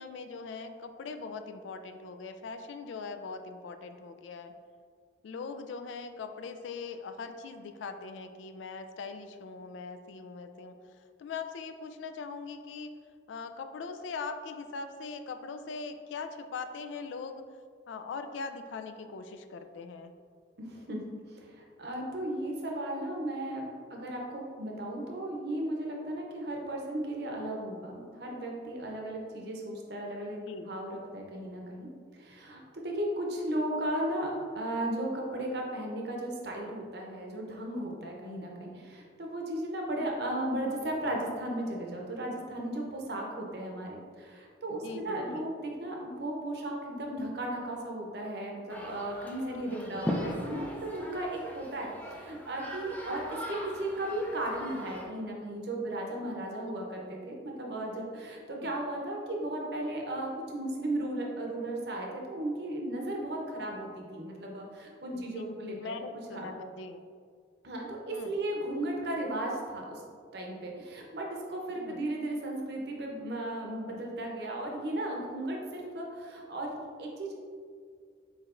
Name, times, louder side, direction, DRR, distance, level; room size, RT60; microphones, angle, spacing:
voice 1, 0.0-4.5 5.2-10.7 11.2-12.9 13.3-17.4 17.9-20.1 30.3-30.7 44.7-45.4 49.3-50.0 56.7-56.8 58.5-58.7 65.1-67.0 68.1-68.3 71.8-72.0, left 4 dB, 80° left, 8 dB, 0.3 m, -41 dB
voice 2, 20.6-21.0 21.3-23.6 23.9-65.9 66.3-66.5 67.6-70.0 70.3-77.4, right 1 dB, 60° right, 0 dB, 0.7 m, -35 dB
sound 1, 48.7-55.0, equal, 10° left, 0.4 m, -39 dB
4.7 x 4.2 x 2.5 m, 2.1 s
head